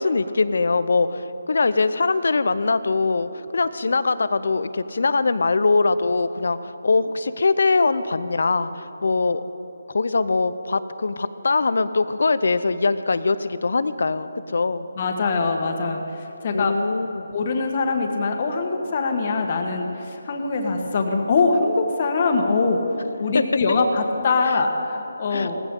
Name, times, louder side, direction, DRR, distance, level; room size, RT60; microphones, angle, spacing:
voice 1, 0.0-9.4 9.9-14.9 16.5-17.2 25.3-25.5, left 3 dB, 65° left, 13 dB, 0.7 m, -22 dB
voice 2, 14.9-16.7 17.3-25.6, left 3 dB, 40° left, 3 dB, 1.5 m, -23 dB
18.0 x 15.5 x 3.9 m, 2.9 s
figure-of-eight pair, 160°, 0 cm